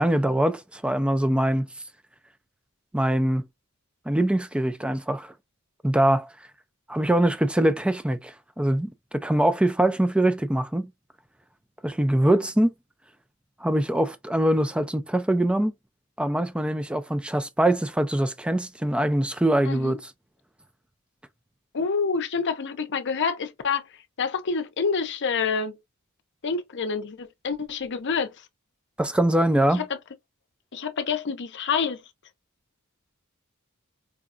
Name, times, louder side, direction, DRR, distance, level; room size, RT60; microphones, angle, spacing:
voice 1, 0.0-1.7 2.9-3.4 4.1-5.3 5.8-6.3 6.9-10.9 11.8-12.7 13.6-15.7 16.2-20.0 29.0-29.8, right 1 dB, 5° right, 0.4 m, -23 dB
voice 2, 19.6-20.0 21.7-23.8 24.2-25.8 26.4-28.4 29.8-29.9 30.7-32.0, left 5 dB, 55° left, 0.6 m, -27 dB
4.8 x 2.3 x 2.5 m
head